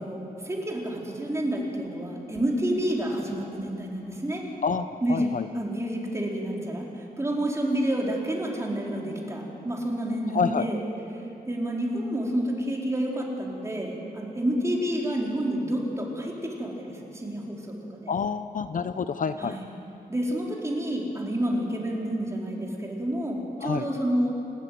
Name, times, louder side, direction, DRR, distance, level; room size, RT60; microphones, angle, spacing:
voice 1, 0.0-4.4 5.0-10.8 11.4-18.1 19.4-19.7 20.1-24.3, right 1 dB, 20° right, -2 dB, 4.0 m, -29 dB
voice 2, 4.6-5.4 10.3-10.7 18.1-19.6 23.6-23.9, left 6 dB, 55° left, 11 dB, 0.7 m, -28 dB
29.5 x 13.0 x 9.3 m, 2.9 s
wide cardioid pair, 145°, 16 cm